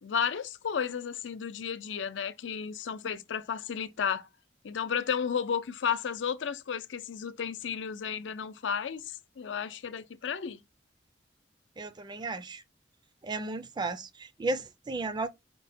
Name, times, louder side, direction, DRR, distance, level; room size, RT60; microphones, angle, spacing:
voice 1, 0.0-4.3 4.6-10.6, left 7 dB, 90° left, 0.5 m, -33 dB
voice 2, 11.8-12.6 13.2-15.3, right 2 dB, 25° right, 0.4 m, -34 dB
5.2 x 2.1 x 4.1 m
head